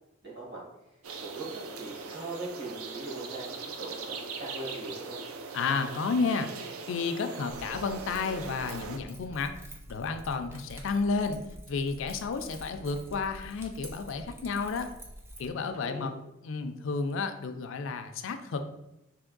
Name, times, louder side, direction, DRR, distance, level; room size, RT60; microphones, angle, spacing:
voice 1, 0.2-0.6 1.2-5.2 15.6-16.2, right 2 dB, 55° right, -4 dB, 1.5 m, -40 dB
sound 1, 1.0-9.0, right 4 dB, 90° right, 0.4 m, -40 dB
voice 2, 5.5-6.5 6.9-9.5 9.9-11.4 11.7-14.9 15.4-16.1 16.4-18.7, left 4 dB, 60° left, 7 dB, 0.4 m, -31 dB
Keys jangling, 7.5-15.5, equal, 10° right, 0.4 m, -47 dB
3.4 x 2.9 x 3.8 m, 0.90 s
head